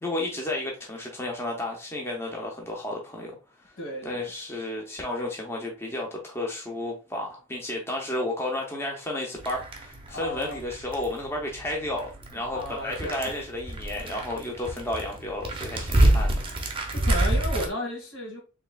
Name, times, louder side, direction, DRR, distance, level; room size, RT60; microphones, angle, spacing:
voice 1, 0.0-3.4 4.0-16.4 16.7-16.9, left 1 dB, 10° left, 0.7 m, -32 dB
voice 2, 3.8-4.3 10.1-10.6 12.5-13.3 16.9-18.4, equal, 75° left, 2.0 m, -34 dB
sound 1, 9.4-17.7, right 1 dB, 25° right, 0.7 m, -27 dB
4.6 x 3.2 x 2.3 m
head